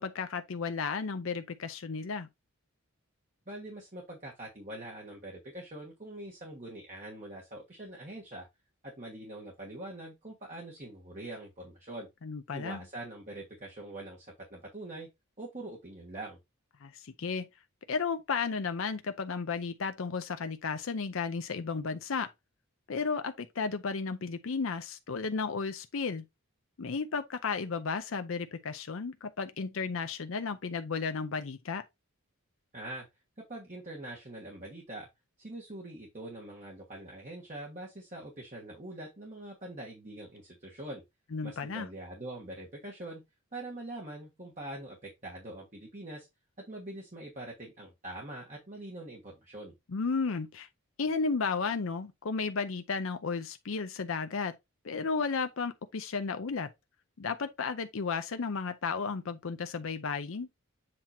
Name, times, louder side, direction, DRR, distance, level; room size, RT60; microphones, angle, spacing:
voice 1, 0.0-2.3 12.2-12.8 16.8-17.5 17.9-22.3 22.9-26.2 26.8-31.8 41.3-41.9 49.9-50.7 51.0-54.5 54.8-56.7 57.2-60.5, left 5 dB, 65° left, 0.6 m, -33 dB
voice 2, 3.5-8.5 8.8-12.1 12.5-15.1 15.4-16.4 32.7-33.1 33.5-35.1 35.4-41.0 41.4-43.2 43.5-46.3 46.7-49.7, right 1 dB, 35° right, 1.6 m, -43 dB
7.7 x 2.9 x 4.3 m
head